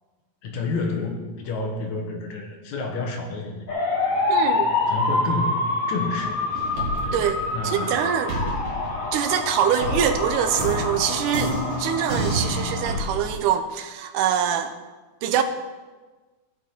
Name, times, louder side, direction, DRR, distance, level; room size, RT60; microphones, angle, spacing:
voice 1, 0.4-3.7 4.9-6.5 7.0-8.6, left 3 dB, 70° left, 3 dB, 2.3 m, -30 dB
sound 1, 3.7-13.0, left 2 dB, 40° left, 1.3 m, -27 dB
voice 2, 4.3-4.7 7.1-7.4 7.6-8.3 9.1-14.7 15.2-15.4, right 9 dB, 90° right, 8 dB, 2.2 m, -24 dB
sound 2, 6.5-7.9 8.3-13.4, right 1 dB, 35° right, 1.9 m, -29 dB
15.5 x 6.5 x 4.3 m, 1.3 s
omnidirectional pair, 3.7 m